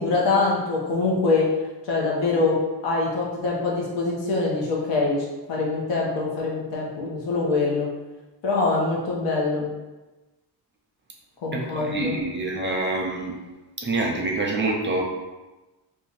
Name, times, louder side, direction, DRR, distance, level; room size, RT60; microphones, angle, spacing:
voice 1, 0.0-1.5 1.8-2.6 2.8-7.9 8.4-9.7 11.4-12.2, left 3 dB, 80° left, -3 dB, 1.1 m, -24 dB
voice 2, 11.8-13.3 13.8-15.0, right 2 dB, 25° right, 0 dB, 0.5 m, -26 dB
2.7 x 2.5 x 3.9 m, 1.1 s
cardioid pair, 125°, 43 cm